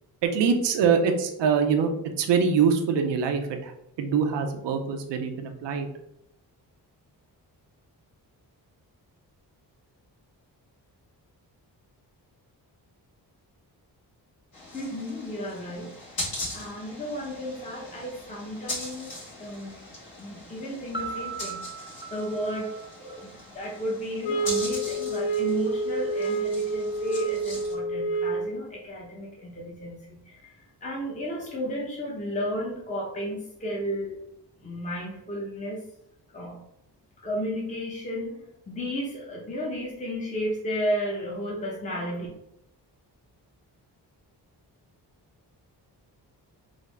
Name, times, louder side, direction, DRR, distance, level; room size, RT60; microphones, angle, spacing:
voice 1, 0.2-1.9 2.2-5.9, right 6 dB, 80° right, 5 dB, 0.6 m, -24 dB
sound 1, 14.5-27.7, left 1 dB, 55° left, 1.5 m, -40 dB
voice 2, 14.7-15.9 16.2-19.9 20.2-34.2 34.6-35.8 36.3-36.6 37.2-42.3, equal, 15° left, -3 dB, 0.7 m, -33 dB
Piano, 20.9-23.7, right 4 dB, 10° right, 0.4 m, -38 dB
sound 2, 24.2-28.6, right 3 dB, 85° left, 0.6 m, -28 dB
3.6 x 2.0 x 3.2 m, 0.79 s
cardioid pair, 55°, 42 cm